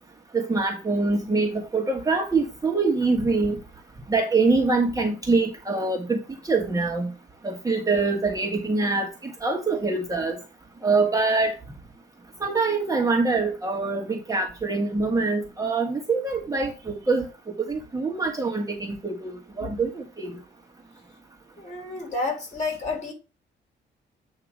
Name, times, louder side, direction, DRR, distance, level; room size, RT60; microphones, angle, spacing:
voice 1, 0.3-3.6 4.1-6.2 6.4-7.1 7.4-10.4 10.8-11.5 12.4-17.3 17.6-19.3 19.6-20.4, right 3 dB, 15° right, 1.4 m, -24 dB
voice 2, 21.6-23.1, left 3 dB, 35° left, 4.2 m, -30 dB
8.6 x 2.9 x 6.2 m
cardioid pair, 90°, 20 cm